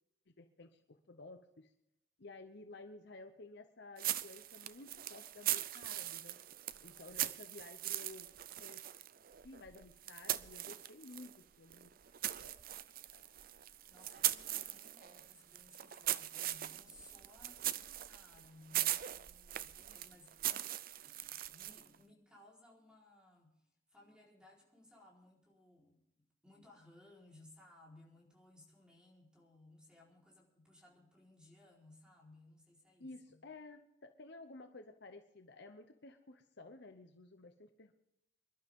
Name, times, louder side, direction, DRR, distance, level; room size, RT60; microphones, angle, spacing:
voice 1, 0.3-1.7 2.2-6.4 6.8-8.3 8.6-8.8 9.4-11.9 12.4-12.5 13.1-13.2 33.0-37.9, left 2 dB, 60° left, 6 dB, 0.9 m, -54 dB
sound 1, 4.0-11.4 11.7-22.0, right 13 dB, 45° right, 0.5 m, -40 dB
voice 2, 6.6-7.2 13.9-20.7 21.0-33.4, left 2 dB, 5° right, -3 dB, 4.2 m, -62 dB
24.5 x 12.0 x 3.7 m, 0.81 s
head